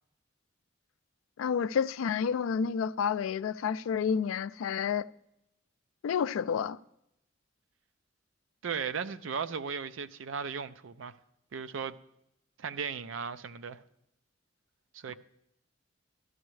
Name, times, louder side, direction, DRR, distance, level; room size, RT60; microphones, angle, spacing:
voice 1, 1.4-5.1 6.0-6.8, left 7 dB, 90° left, 0.3 m, -30 dB
voice 2, 8.6-11.2 11.5-12.0 12.6-13.8 14.9-15.1, right 6 dB, 80° right, 0.5 m, -36 dB
13.5 x 12.5 x 3.2 m
head